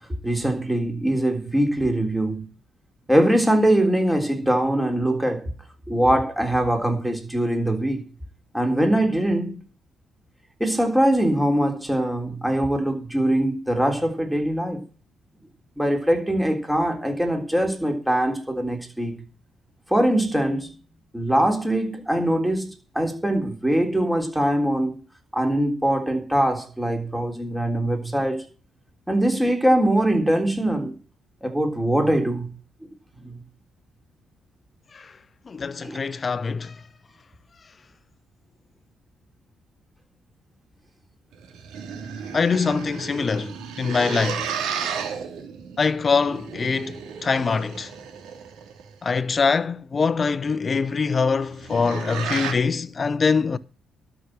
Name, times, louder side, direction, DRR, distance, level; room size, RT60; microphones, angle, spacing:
voice 1, 0.2-2.4 3.1-5.5 5.9-8.0 8.5-9.6 10.6-14.8 15.8-19.1 19.9-20.7 21.1-22.7 23.0-25.0 25.3-28.4 29.1-31.0 31.4-32.5 33.2-33.4 35.8-36.0, right 1 dB, 5° right, 3.6 m, -22 dB
voice 2, 35.5-36.7 42.3-43.5 43.8-44.4 45.8-47.9 49.0-53.6, left 5 dB, 35° left, 0.8 m, -23 dB
sound 1, 41.3-48.9 51.3-52.5, right 7 dB, 85° right, 3.0 m, -33 dB
12.5 x 6.3 x 7.5 m
cardioid pair, 90°, 0 cm